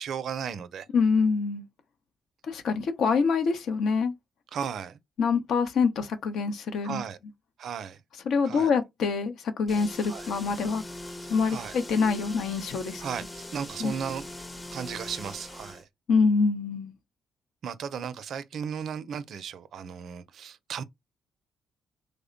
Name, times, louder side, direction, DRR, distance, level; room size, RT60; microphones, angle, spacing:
voice 1, 0.0-0.9 4.5-5.0 6.8-7.2 7.6-8.0 8.4-8.7 10.1-10.3 11.5-11.7 13.0-14.2 14.7-15.9 17.6-20.8, right 7 dB, 65° right, 0.4 m, -35 dB
voice 2, 0.9-1.6 2.5-4.1 5.2-7.0 8.3-10.8 11.3-13.0 13.8-13.9 16.1-16.9, left 5 dB, 70° left, 0.7 m, -25 dB
sound 1, 9.7-15.8, left 1 dB, 15° left, 0.6 m, -41 dB
3.2 x 2.1 x 3.7 m
cardioid pair, 90°, 0 cm